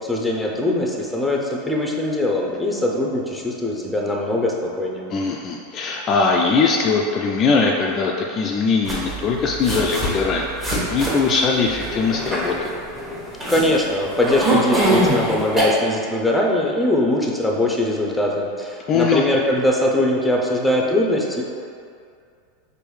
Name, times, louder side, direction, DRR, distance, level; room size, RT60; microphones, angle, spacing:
voice 1, 0.0-5.1 13.5-21.4, left 1 dB, 5° left, -1 dB, 0.6 m, -21 dB
voice 2, 5.1-10.5 10.8-12.7 18.9-19.2, left 4 dB, 35° left, 0 dB, 0.3 m, -20 dB
sound 1, 8.8-15.6, right 1 dB, 20° right, 1.2 m, -24 dB
6.1 x 2.6 x 3.2 m, 2.3 s
figure-of-eight pair, 85°, 0 cm